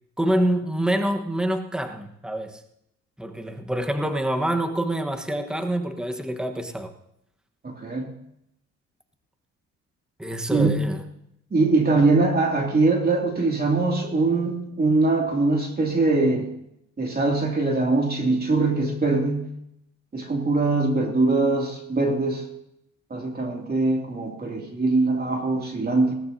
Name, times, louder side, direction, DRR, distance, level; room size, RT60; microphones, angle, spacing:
voice 1, 0.2-2.6 3.2-6.9 10.2-11.0, right 1 dB, 5° right, 1.3 m, -26 dB
voice 2, 7.6-8.1 10.5-10.7 11.5-16.5 17.0-19.4 20.1-22.4 23.1-26.1, right 3 dB, 30° right, 2.6 m, -22 dB
19.5 x 17.0 x 2.8 m
cardioid pair, 90°, 30 cm